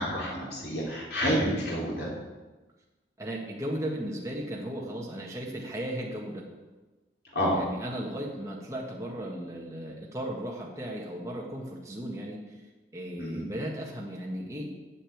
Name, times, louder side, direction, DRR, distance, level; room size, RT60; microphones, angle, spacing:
voice 1, 0.0-2.1 7.3-7.6 13.2-13.4, equal, 65° left, -5 dB, 3.9 m, -29 dB
voice 2, 3.2-6.4 7.5-12.6 12.9-14.7, right 1 dB, 15° right, -2 dB, 1.5 m, -36 dB
9.9 x 6.6 x 8.6 m, 1.2 s
head